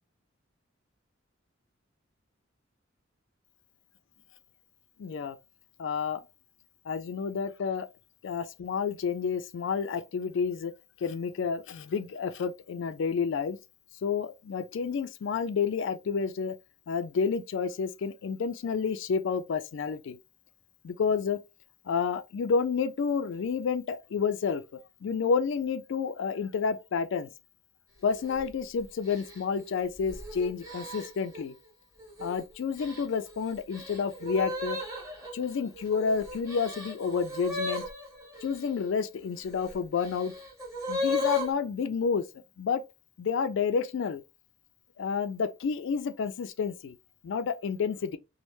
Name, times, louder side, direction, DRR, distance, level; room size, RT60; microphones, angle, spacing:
voice 1, 5.0-5.4 5.8-6.2 6.9-7.9 8.2-10.7 11.0-13.6 14.0-16.6 16.9-20.2 20.8-21.4 21.9-27.3 28.0-31.5 32.2-34.8 35.3-37.8 38.4-40.3 40.9-42.3 42.6-42.8 43.2-44.2 45.0-47.0 47.2-48.2, left 5 dB, 65° left, 0.4 m, -30 dB
sound 1, 28.1-28.4 29.1-31.4 32.0-32.4 32.8-38.7 39.4-41.5, left 2 dB, 15° right, 1.2 m, -36 dB
3.1 x 2.0 x 3.0 m
head